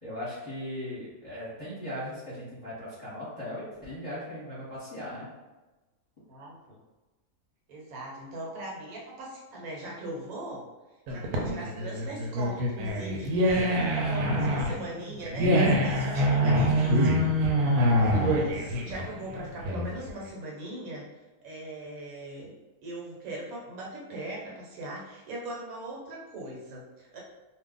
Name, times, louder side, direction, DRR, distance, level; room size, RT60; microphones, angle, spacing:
voice 1, 0.0-5.3, left 1 dB, 25° left, -10 dB, 1.1 m, -38 dB
voice 2, 6.3-6.8 7.7-10.6 11.1-17.3 17.7-21.0 21.4-22.5 22.8-27.2, right 1 dB, 70° right, -3 dB, 1.3 m, -40 dB
sound 1, 11.1-20.1, equal, 90° right, 1.1 m, -25 dB
2.6 x 2.4 x 3.7 m, 1.1 s
omnidirectional pair, 1.6 m